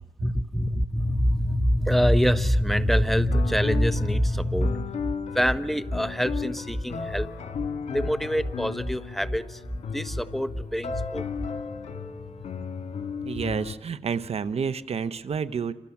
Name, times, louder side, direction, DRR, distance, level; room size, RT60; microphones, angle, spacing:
voice 1, 0.2-7.5 7.7-9.6 9.9-11.6 12.6-12.7 13.0-13.3, equal, ahead, 12 dB, 1.2 m, -25 dB
sound 1, 3.3-13.7, left 6 dB, 90° left, 2.0 m, -35 dB
voice 2, 13.2-15.7, right 6 dB, 65° right, 13 dB, 1.1 m, -29 dB
28.0 x 26.5 x 7.3 m, 0.96 s
cardioid pair, 70°, 11 cm